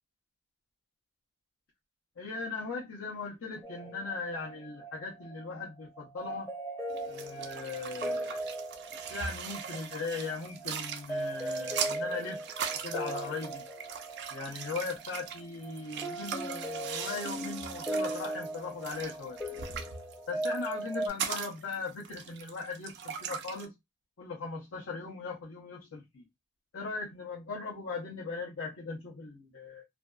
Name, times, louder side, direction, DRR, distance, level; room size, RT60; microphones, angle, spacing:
voice 1, 2.2-6.5 7.1-8.4 9.1-12.4 12.8-13.6 14.3-19.4 20.3-23.7 24.2-26.2 26.7-29.8, left 4 dB, 70° left, 0.7 m, -39 dB
sound 1, 3.6-21.1, right 1 dB, 10° left, 0.6 m, -39 dB
sound 2, 6.9-23.6, right 7 dB, 50° right, 0.3 m, -40 dB
2.5 x 2.2 x 2.2 m
head